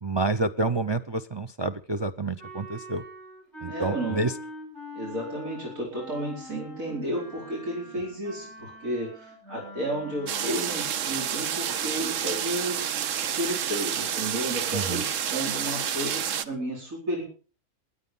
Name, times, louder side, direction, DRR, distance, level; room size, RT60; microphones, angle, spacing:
voice 1, 0.0-3.0 3.6-4.3 14.7-15.0, right 2 dB, 30° right, 13 dB, 0.6 m, -28 dB
Wind instrument woodwind instrument, 2.4-11.0, left 1 dB, 50° right, 6.7 m, -43 dB
voice 2, 3.7-4.3 4.9-17.2, right 1 dB, 85° right, -1 dB, 5.2 m, -32 dB
sound 1, 10.3-16.5, right 9 dB, 70° right, 1.2 m, -29 dB
20.0 x 9.1 x 5.5 m, 0.38 s
omnidirectional pair, 1.4 m